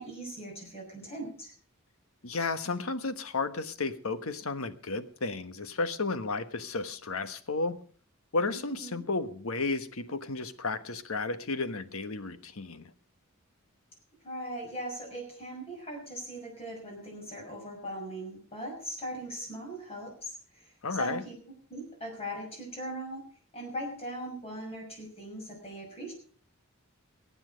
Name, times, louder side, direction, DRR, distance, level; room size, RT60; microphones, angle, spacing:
voice 1, 0.0-1.5 8.5-9.0 14.2-21.4 21.7-23.2 23.5-26.1, equal, 30° left, 0 dB, 6.1 m, -40 dB
voice 2, 2.2-7.7 8.3-12.9 20.8-21.2, left 3 dB, 85° left, 10 dB, 1.3 m, -33 dB
23.0 x 9.0 x 5.2 m, 0.43 s
head